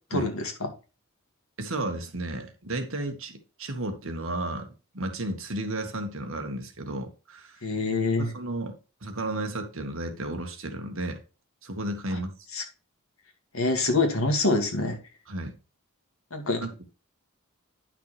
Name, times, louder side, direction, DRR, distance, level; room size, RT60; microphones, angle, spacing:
voice 1, 0.1-0.5 7.6-8.3 12.1-12.2 12.5-12.6 13.5-15.0 16.3-16.6, left 2 dB, 65° left, 2.0 m, -25 dB
voice 2, 1.6-7.6 8.2-11.2 11.6-12.3 15.3-15.5 16.6-16.8, right 1 dB, 60° right, 1.6 m, -33 dB
10.0 x 5.9 x 3.3 m
head